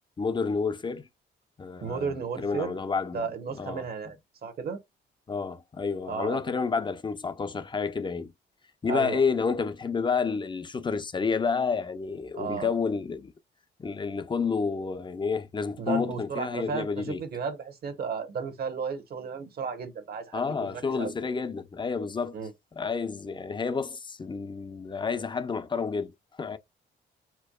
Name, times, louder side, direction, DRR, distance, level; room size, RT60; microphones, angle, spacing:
voice 1, 0.2-1.0 1.6-3.2 3.6-3.8 5.3-8.3 8.8-13.3 13.8-17.2 20.3-22.4 22.8-26.6, left 5 dB, 25° left, 0.6 m, -30 dB
voice 2, 1.8-2.8 3.1-4.2 4.4-4.8 6.0-6.4 8.9-9.2 12.3-12.7 15.8-21.1 22.3-22.5, right 5 dB, 50° right, 1.1 m, -34 dB
4.4 x 2.3 x 2.3 m
cardioid pair, 90°, 20 cm